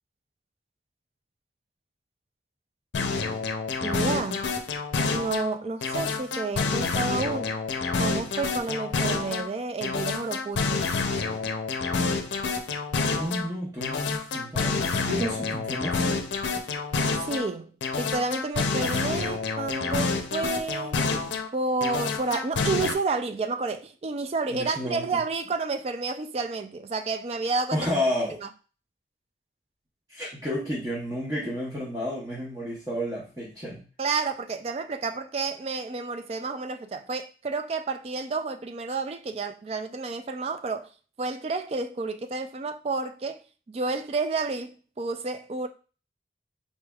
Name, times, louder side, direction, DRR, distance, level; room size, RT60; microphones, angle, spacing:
sound 1, 2.9-5.5 5.8-9.5 9.8-13.5 13.8-17.5 17.8-21.5 21.8-22.9, left 4 dB, 85° left, 0.5 m, -28 dB
voice 1, 3.8-4.4 5.1-7.5 7.9-10.9 17.2-17.7 18.0-21.0 21.5-27.9 28.4-28.5 34.0-40.9 41.2-43.4 43.7-45.7, right 3 dB, 35° right, 0.3 m, -30 dB
voice 2, 13.1-16.2 24.5-25.1 27.7-28.4 30.1-33.8, equal, 20° right, 0.9 m, -31 dB
4.2 x 3.3 x 2.3 m
head